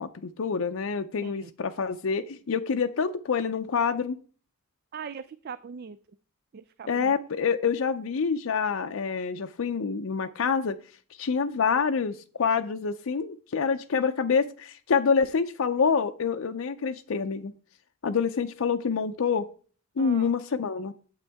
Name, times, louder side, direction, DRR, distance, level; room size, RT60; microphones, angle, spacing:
voice 1, 0.0-4.2 6.9-10.8 11.2-17.5 18.0-19.5 20.0-20.9, left 5 dB, 80° left, 6 dB, 0.5 m, -27 dB
voice 2, 4.9-6.0 6.5-7.1 20.0-20.3, right 6 dB, 50° right, 14 dB, 0.4 m, -41 dB
8.9 x 7.8 x 3.4 m, 0.41 s
head